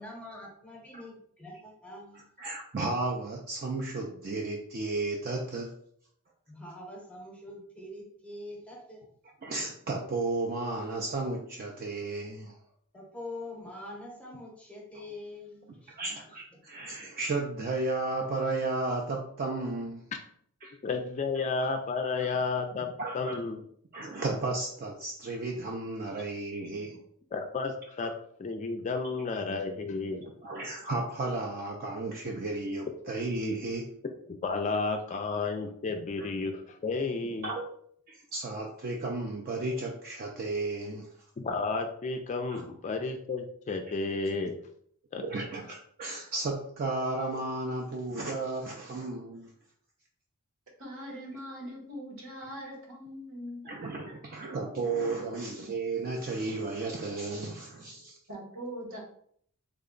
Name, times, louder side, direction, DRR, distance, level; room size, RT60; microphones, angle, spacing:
voice 1, 0.0-2.2 6.5-9.0 12.9-16.2 16.5-16.6, left 1 dB, 5° left, -2 dB, 0.8 m, -44 dB
voice 2, 2.4-5.7 9.4-12.6 15.9-20.0 20.6-20.7 23.0-23.4 23.9-27.0 28.0-28.1 30.1-33.9 35.1-35.2 36.2-36.3 37.4-37.7 38.1-41.1 42.5-42.6 45.2-49.5 52.4-52.5 53.6-58.2, right 2 dB, 40° right, 0 dB, 0.4 m, -33 dB
voice 3, 20.8-22.9 23.1-23.6 27.3-28.1 28.4-30.3 34.3-37.5 41.4-44.6 45.1-45.3, left 4 dB, 35° left, 5 dB, 0.3 m, -32 dB
voice 4, 50.8-53.7 58.3-59.0, equal, 65° right, -1 dB, 1.2 m, -41 dB
3.4 x 2.2 x 3.7 m, 0.62 s
head